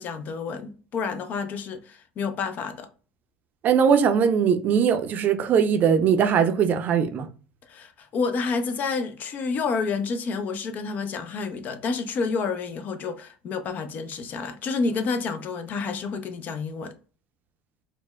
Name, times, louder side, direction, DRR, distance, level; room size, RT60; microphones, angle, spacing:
voice 1, 0.0-2.9 7.7-16.9, left 4 dB, 45° left, 0.5 m, -29 dB
voice 2, 3.6-7.3, right 7 dB, 45° right, 0.5 m, -20 dB
4.1 x 2.1 x 2.2 m
hypercardioid pair, 85°, 4 cm